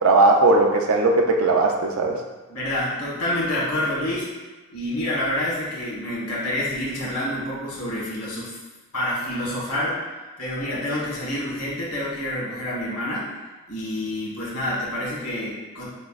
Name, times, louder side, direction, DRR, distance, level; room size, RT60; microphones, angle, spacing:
voice 1, 0.0-2.2, right 3 dB, 65° right, 1 dB, 0.5 m, -18 dB
voice 2, 2.5-4.3 4.7-8.6 8.9-10.0 10.4-13.3 13.7-15.9, left 1 dB, 90° left, -6 dB, 1.4 m, -27 dB
6.3 x 2.2 x 2.4 m, 1.2 s
head